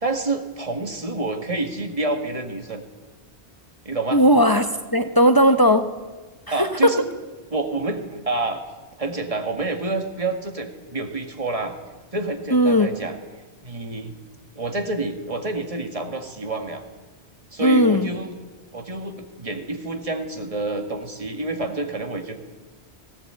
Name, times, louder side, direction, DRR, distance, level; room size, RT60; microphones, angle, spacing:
voice 1, 0.0-2.8 3.9-4.2 6.5-7.0 7.5-8.6 9.0-11.8 12.1-13.2 13.6-14.2 14.6-16.8 17.5-18.3 18.7-22.4, right 2 dB, 30° right, 5 dB, 2.0 m, -28 dB
voice 2, 4.1-5.9 6.6-6.9 12.5-12.9 17.6-18.1, equal, 20° left, 7 dB, 0.9 m, -17 dB
18.0 x 18.0 x 8.9 m, 1.3 s
omnidirectional pair, 1.1 m